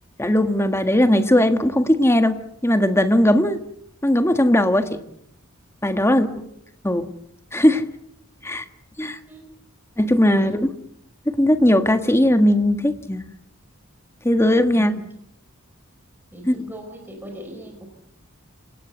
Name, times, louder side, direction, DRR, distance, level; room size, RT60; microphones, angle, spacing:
voice 1, 0.2-3.6 4.0-4.9 5.8-6.3 6.8-7.1 7.5-7.8 8.4-8.6 9.0-9.2 10.0-10.7 11.3-13.2 14.2-14.9 16.5-16.6, left 1 dB, 15° left, 8 dB, 1.6 m, -18 dB
voice 2, 4.8-5.2 6.0-6.3 9.3-9.4 10.3-10.6 14.7-15.1 16.3-17.9, right 1 dB, 10° right, 2 dB, 4.8 m, -39 dB
28.5 x 18.0 x 8.1 m, 0.74 s
head